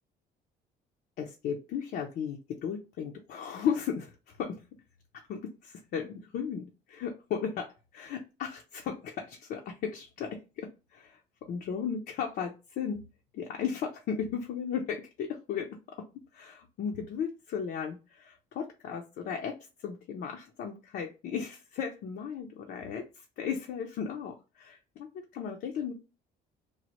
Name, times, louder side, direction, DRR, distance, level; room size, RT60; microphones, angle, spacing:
voice 1, 1.2-4.6 5.1-11.2 11.5-13.0 13.3-15.8 16.3-19.6 19.8-25.9, left 7 dB, 65° left, 2 dB, 0.5 m, -35 dB
3.1 x 2.1 x 2.9 m, 0.30 s
cardioid pair, 110°, 17 cm